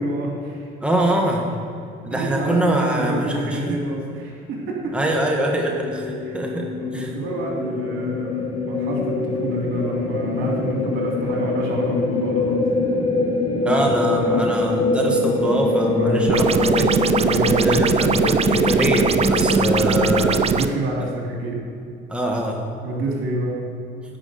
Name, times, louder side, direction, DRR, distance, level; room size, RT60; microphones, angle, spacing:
voice 1, 0.0-0.6 2.1-4.9 6.2-6.4 6.8-12.6 13.6-14.5 15.9-16.9 17.3-17.9 20.4-21.6 22.8-23.6, right 1 dB, 70° right, -2 dB, 3.1 m, -28 dB
voice 2, 0.8-1.5 2.0-3.8 4.9-7.1 13.6-16.9 17.6-20.4 22.1-22.6, right 1 dB, 5° right, -1 dB, 1.5 m, -24 dB
sound 1, 4.6-20.4, left 2 dB, 25° left, 1.7 m, -24 dB
sound 2, 16.3-20.7, right 6 dB, 30° right, 0.5 m, -20 dB
10.0 x 6.0 x 7.9 m, 2.5 s
cardioid pair, 95°, 21 cm